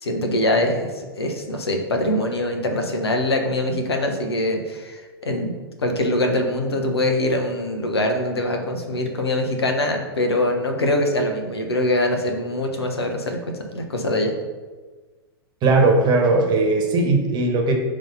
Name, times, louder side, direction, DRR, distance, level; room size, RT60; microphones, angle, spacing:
voice 1, 0.0-5.5 5.8-13.4 13.7-14.3, left 1 dB, 80° left, 3 dB, 0.9 m, -23 dB
voice 2, 15.6-17.7, right 3 dB, 35° right, 2 dB, 1.2 m, -18 dB
5.4 x 3.2 x 5.4 m, 1.3 s
figure-of-eight pair, 100°, 13 cm